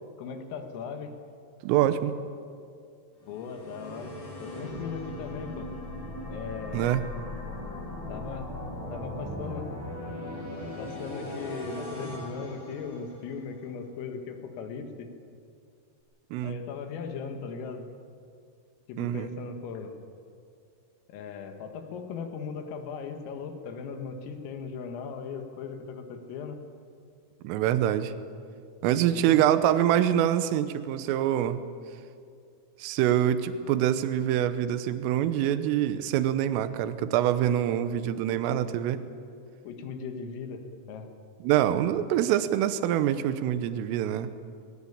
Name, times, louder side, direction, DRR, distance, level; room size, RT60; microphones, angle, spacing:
voice 1, 0.2-1.2 3.2-5.7 6.3-7.0 8.1-8.5 8.9-9.7 10.8-15.1 16.4-17.9 18.9-20.0 21.1-26.6 28.9-29.4 38.3-38.6 39.7-41.1, left 5 dB, 90° left, 6 dB, 4.3 m, -38 dB
voice 2, 1.6-2.1 6.7-7.0 16.3-16.6 19.0-19.3 27.4-28.1 28.8-31.6 32.8-39.0 41.4-44.3, right 11 dB, 85° right, 12 dB, 3.5 m, -25 dB
sound 1, 3.2-13.4, left 1 dB, 40° left, 9.2 m, -38 dB
21.0 x 20.5 x 8.7 m, 2.3 s
omnidirectional pair, 5.8 m